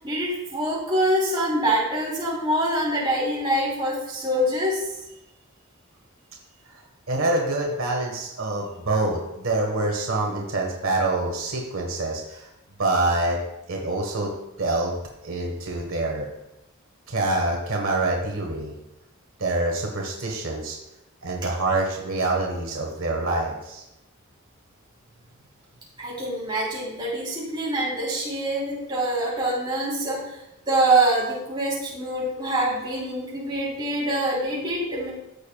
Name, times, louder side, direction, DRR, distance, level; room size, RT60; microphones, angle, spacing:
voice 1, 0.0-4.8 26.0-30.4 30.7-35.1, right 1 dB, 20° right, -6 dB, 3.4 m, -25 dB
voice 2, 6.6-12.5 12.8-13.4 13.7-15.0 15.2-16.3 17.1-18.7 19.4-20.8 21.2-23.8, right 2 dB, 75° right, 0 dB, 1.5 m, -26 dB
14.0 x 6.8 x 2.4 m, 0.89 s
head